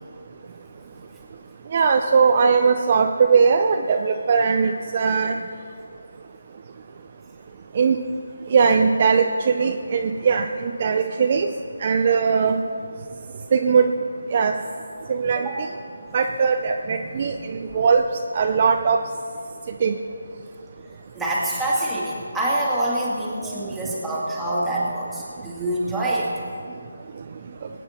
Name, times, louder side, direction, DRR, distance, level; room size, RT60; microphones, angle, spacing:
voice 1, 1.7-5.4 7.8-8.0 8.5-11.5 11.8-12.6 13.5-13.9 14.3-14.5 15.1-15.5 16.1-18.0 18.3-19.0 19.8-20.0 24.5-24.6, right 5 dB, 35° right, 4 dB, 0.5 m, -19 dB
voice 2, 21.2-26.3, right 1 dB, 5° right, -8 dB, 2.1 m, -26 dB
21.5 x 9.0 x 4.4 m, 2.3 s
figure-of-eight pair, 165°, 0 cm